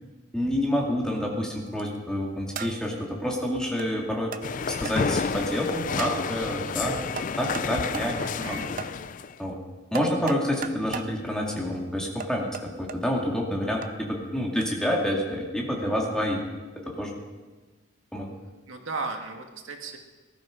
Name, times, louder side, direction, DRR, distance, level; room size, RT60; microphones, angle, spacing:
voice 1, 0.3-4.3 4.7-7.0 7.4-8.6 9.4-9.6 9.9-16.4 16.9-17.1 18.1-18.3, equal, 5° left, -2 dB, 2.3 m, -28 dB
sound 1, 1.6-2.0 2.5-3.0 3.8-3.9 4.3-4.5 4.8-5.0 6.0-6.2 7.2-7.7 7.9-8.1 8.8-8.9 9.9-11.1 12.2-13.0 13.8-13.9 14.6-14.7, right 6 dB, 45° right, 0.6 m, -36 dB
sound 2, 4.4-9.3, left 5 dB, 40° left, 0.4 m, -30 dB
voice 2, 8.2-8.7 18.7-20.0, right 3 dB, 80° right, 3 dB, 1.9 m, -35 dB
19.0 x 12.5 x 5.2 m, 1.3 s
head